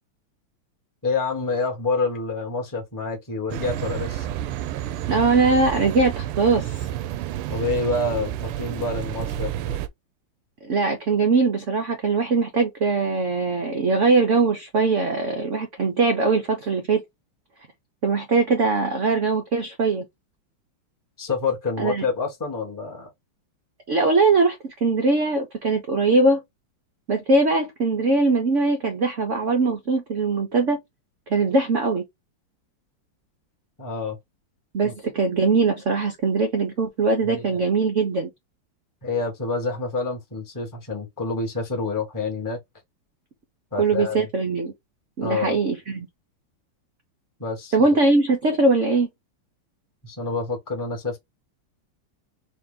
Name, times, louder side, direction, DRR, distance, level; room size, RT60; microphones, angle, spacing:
voice 1, 1.0-4.4 7.5-9.8 21.2-23.1 33.8-34.2 34.8-34.9 37.2-37.4 39.0-42.6 43.7-44.3 45.2-45.6 47.4-47.7 50.0-51.2, left 3 dB, 15° left, 0.8 m, -27 dB
sound 1, 3.5-9.9, right 12 dB, 90° right, 1.5 m, -30 dB
voice 2, 5.1-6.7 10.7-17.0 18.0-20.1 21.8-22.0 23.9-26.4 27.1-30.8 31.3-32.0 34.7-38.3 43.8-44.7 45.2-46.1 47.7-49.1, right 3 dB, 70° right, 0.7 m, -21 dB
4.1 x 2.8 x 3.6 m
omnidirectional pair, 2.4 m